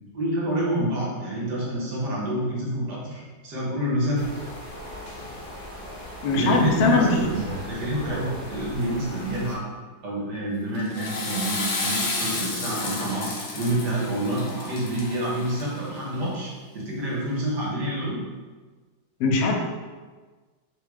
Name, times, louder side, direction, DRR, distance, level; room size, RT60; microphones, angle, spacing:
voice 1, 0.1-4.3 6.3-9.6 10.0-18.2, right 1 dB, 60° right, -5 dB, 1.6 m, -28 dB
sound 1, 4.1-9.6, equal, 30° left, 0.8 m, -37 dB
voice 2, 6.2-7.2 19.2-19.6, left 3 dB, 85° left, 2 dB, 1.4 m, -20 dB
Water / Toilet flush, 10.7-16.0, left 2 dB, 60° left, 1.1 m, -31 dB
3.6 x 3.5 x 3.5 m, 1.4 s
omnidirectional pair, 2.1 m